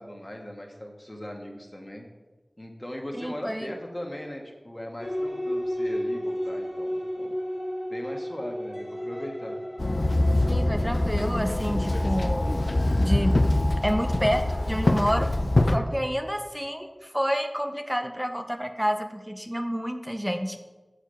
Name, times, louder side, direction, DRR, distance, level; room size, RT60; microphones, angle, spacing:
voice 1, 0.0-2.0 2.6-7.3 7.9-9.6, left 1 dB, 30° left, 1 dB, 1.4 m, -39 dB
voice 2, 3.2-3.7 10.5-12.5 13.0-13.4 13.8-15.3 15.7-20.6, equal, 5° right, 6 dB, 0.7 m, -29 dB
sound 1, 5.0-16.9, equal, 45° left, 2.2 m, -35 dB
Walk footsteps / Chatter / Hiss, 9.8-15.8, left 1 dB, 65° left, 0.5 m, -24 dB
7.0 x 6.6 x 5.2 m, 1.2 s
wide cardioid pair, 45°, 0 cm